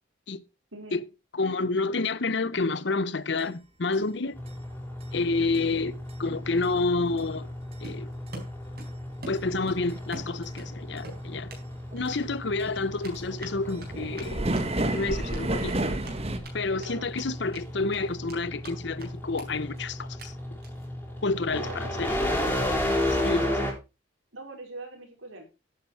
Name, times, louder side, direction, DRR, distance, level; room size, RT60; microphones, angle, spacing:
voice 1, 0.7-1.0 16.8-17.1 21.5-22.4 23.0-23.7 24.3-25.4, right 2 dB, 85° right, 4.8 m, -42 dB
voice 2, 1.3-4.4 5.1-5.9 6.2-7.5 7.8-8.1 9.3-11.5 11.9-14.5 14.9-15.8 16.5-20.3 21.2-22.2 23.2-23.4, left 3 dB, 60° left, 0.8 m, -29 dB
sound 1, 3.4-3.5 3.9-4.0 4.5-4.6 5.0-5.1 5.5-5.6 6.1-6.2 6.6-6.7 7.2-7.3 7.7-7.8 8.3-8.4 8.8-8.9 9.4-9.5 9.9-10.0 10.4-10.5 11.0-11.2 11.5-11.6 11.9-16.4, right 1 dB, 30° right, 1.4 m, -31 dB
sound 2, 4.3-23.7, left 1 dB, 10° left, 4.4 m, -34 dB
Run, 7.8-8.9 9.2-10.7 11.0-11.6 12.0-12.2 13.0-16.5 16.8-16.9 17.1-17.6 17.9-18.7 19.0-19.1 19.4-19.5 19.7-19.8 20.2-20.3 20.6-20.9, right 2 dB, 50° right, 4.3 m, -44 dB
11.0 x 8.7 x 4.7 m
head